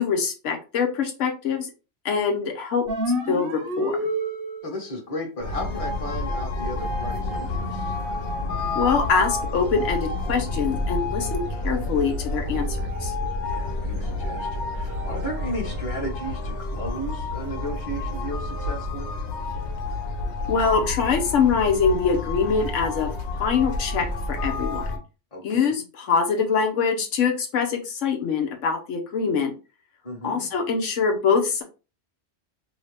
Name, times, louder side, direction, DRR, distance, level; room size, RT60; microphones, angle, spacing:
voice 1, 0.0-1.7 2.0-2.9 3.3-4.1 8.7-13.1 20.5-23.1 23.4-24.9 25.4-29.5 30.2-31.6, left 5 dB, 85° left, 3 dB, 1.1 m, -24 dB
sound 1, 2.9-4.8, equal, 55° right, 0.9 m, -27 dB
voice 2, 4.6-8.0 13.4-19.1 25.3-25.7 30.0-30.5, equal, 30° left, 0 dB, 1.1 m, -34 dB
sound 2, 5.4-25.0, left 2 dB, 65° left, 1.2 m, -29 dB
2.8 x 2.7 x 3.2 m, 0.31 s
omnidirectional pair, 1.3 m